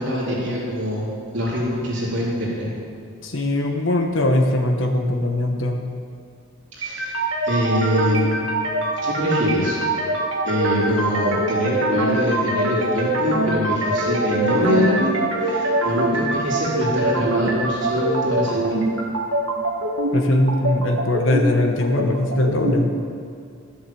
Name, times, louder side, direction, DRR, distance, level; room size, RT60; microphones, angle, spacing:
voice 1, 0.0-2.7 6.8-7.1 7.4-8.5 9.0-9.8 10.4-18.7, equal, 55° right, -7 dB, 3.8 m, -24 dB
voice 2, 3.2-5.9 20.1-22.9, left 1 dB, 65° left, 3 dB, 1.2 m, -21 dB
sound 1, 6.8-22.8, right 1 dB, 75° right, 1.9 m, -23 dB
13.0 x 7.8 x 7.1 m, 2.3 s
head